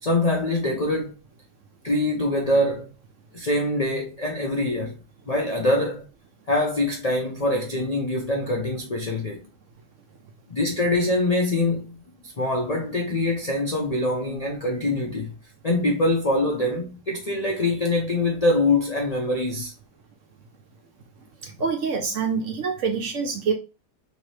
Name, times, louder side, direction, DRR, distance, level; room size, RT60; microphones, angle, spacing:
voice 1, 0.0-1.1 1.8-2.9 3.3-4.9 5.3-6.0 6.5-9.4 10.5-12.0 12.4-15.3 15.6-19.7, left 2 dB, 65° left, 0.4 m, -24 dB
voice 2, 21.4-23.5, right 5 dB, 65° right, 0.8 m, -26 dB
3.8 x 2.9 x 3.2 m
omnidirectional pair, 1.8 m